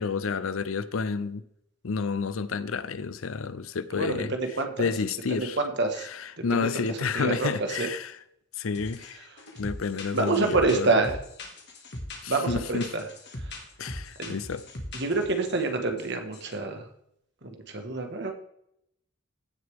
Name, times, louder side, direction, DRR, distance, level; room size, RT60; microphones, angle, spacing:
voice 1, 0.0-1.4 1.8-4.3 4.8-5.6 6.0-8.2 8.6-9.3 9.6-10.9 12.2-12.9 13.8-14.6, left 5 dB, 85° left, 15 dB, 0.6 m, -30 dB
voice 2, 3.9-4.9 5.3-6.1 6.4-6.7 7.1-7.9 10.1-11.2 12.3-13.0 14.2-14.3 14.9-16.8 17.4-18.3, right 3 dB, 60° right, 5 dB, 1.6 m, -27 dB
sound 1, 8.7-9.1 9.4-15.6 16.0-16.1 16.3-16.5, left 1 dB, 60° left, 2.0 m, -40 dB
16.0 x 6.7 x 3.6 m, 0.75 s
head